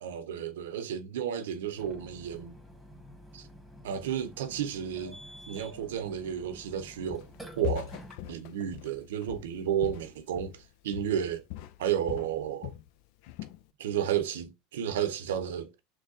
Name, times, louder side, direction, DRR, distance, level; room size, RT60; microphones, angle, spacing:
voice 1, 0.0-2.6 3.3-3.5 3.8-5.2 5.5-7.3 7.6-7.9 8.2-11.4 11.8-12.7 13.8-15.8, right 9 dB, 80° right, 0.6 m, -32 dB
Burping eructation, 1.8-8.1, equal, ahead, 1.5 m, -49 dB
Walk footsteps, 7.1-7.4 7.6-10.7 10.9-11.2 11.5-12.9 13.2-13.6, left 15 dB, 65° left, 0.4 m, -40 dB
6.4 x 2.2 x 2.7 m
hypercardioid pair, 85°, 0 cm